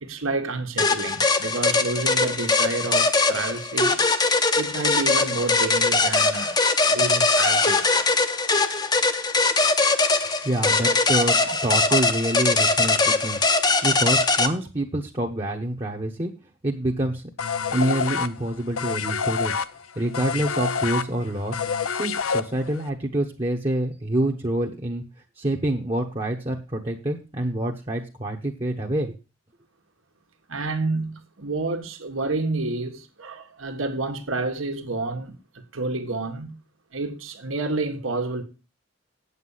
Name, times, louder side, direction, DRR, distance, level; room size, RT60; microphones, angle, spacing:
voice 1, 0.0-4.0 4.5-6.6 6.9-8.1 10.8-10.9 11.5-11.6 11.9-12.0 30.5-36.6 36.9-38.4, right 3 dB, 80° right, 1.6 m, -29 dB
sound 1, 0.8-14.5, left 3 dB, 20° left, 0.7 m, -21 dB
voice 2, 10.4-11.4 11.6-13.4 13.8-16.3 16.6-17.2 17.7-19.5 20.0-21.6 21.9-25.0 25.4-29.1, right 1 dB, 25° right, 1.0 m, -26 dB
sound 2, 17.4-22.9, left 6 dB, 90° left, 0.7 m, -27 dB
8.6 x 8.2 x 5.7 m
head